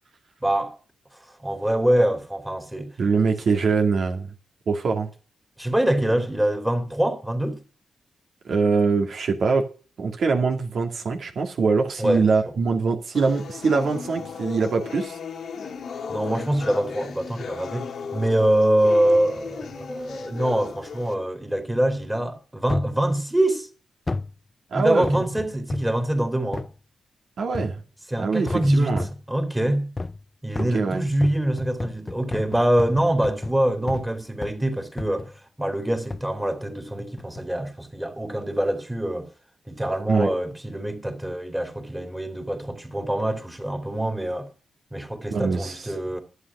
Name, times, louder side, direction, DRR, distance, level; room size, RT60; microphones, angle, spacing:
voice 1, 0.4-0.7 1.4-2.9 5.6-7.6 12.0-12.2 16.1-23.7 24.7-26.7 28.1-29.9 30.4-39.3 39.7-44.5 44.9-46.2, right 1 dB, 10° right, 2.9 m, -24 dB
voice 2, 3.0-4.3 4.7-5.1 8.4-9.6 10.0-15.2 24.7-25.2 27.4-27.8 28.2-29.1 30.7-31.1 40.1-40.3 45.3-45.8, right 4 dB, 65° right, 2.3 m, -23 dB
sound 1, 13.1-21.1, left 6 dB, 70° left, 1.8 m, -36 dB
sound 2, 22.7-23.0 24.1-24.4 25.0-26.0 26.5-26.8 27.5-27.9 28.5-29.3 30.0-30.2 30.5-34.1 34.4-34.7 35.0-35.4 36.1-36.3 37.2-37.5 38.1-38.2, left 3 dB, 25° left, 0.5 m, -33 dB
11.5 x 8.6 x 6.1 m
cardioid pair, 90°, 0 cm